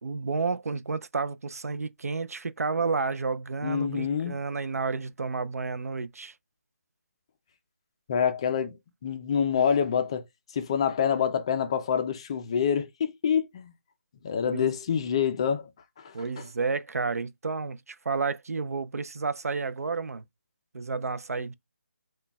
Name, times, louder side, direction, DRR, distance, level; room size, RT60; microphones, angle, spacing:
voice 1, 0.0-6.3 14.5-14.7 16.1-20.2 20.7-21.5, right 4 dB, 85° right, 0.4 m, -31 dB
voice 2, 3.6-4.4 8.1-10.2 10.5-13.7 14.2-15.7 16.0-16.1, left 7 dB, 20° left, 0.3 m, -26 dB
5.7 x 2.2 x 2.2 m
figure-of-eight pair, 165°, 8 cm